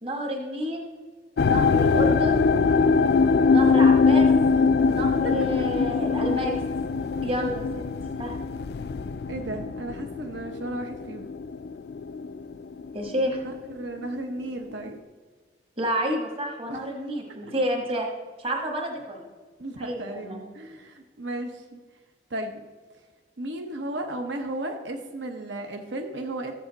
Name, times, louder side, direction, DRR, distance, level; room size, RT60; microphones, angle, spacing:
voice 1, 0.0-0.9 1.4-2.5 3.5-4.3 4.9-6.6 7.2-7.8 8.2-8.4 12.9-13.4 15.8-18.1 18.4-19.2 19.8-20.4, equal, 30° right, 1 dB, 1.5 m, -29 dB
sound 1, 1.4-12.5 12.8-13.4 14.0-14.1, left 4 dB, 60° left, 0.3 m, -22 dB
voice 2, 5.2-5.7 9.3-11.3 13.4-15.0 16.7-16.8 19.6-21.8 22.3-22.6 23.4-26.5, right 1 dB, 75° right, 4 dB, 0.9 m, -34 dB
13.5 x 7.7 x 4.0 m, 1.4 s
head